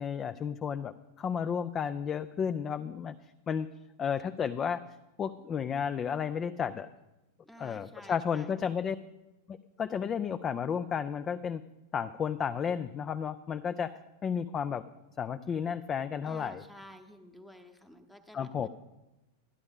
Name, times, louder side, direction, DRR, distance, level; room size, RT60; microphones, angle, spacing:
voice 1, 0.0-3.2 3.5-3.7 4.0-4.8 5.2-6.9 7.6-9.0 9.5-11.6 11.9-14.8 15.2-16.6 18.3-18.7, left 7 dB, 25° left, 12 dB, 0.4 m, -32 dB
voice 2, 7.5-8.5 16.2-18.7, equal, 5° left, 8 dB, 1.0 m, -51 dB
12.0 x 11.5 x 3.6 m, 1.0 s
figure-of-eight pair, 90°, 0 cm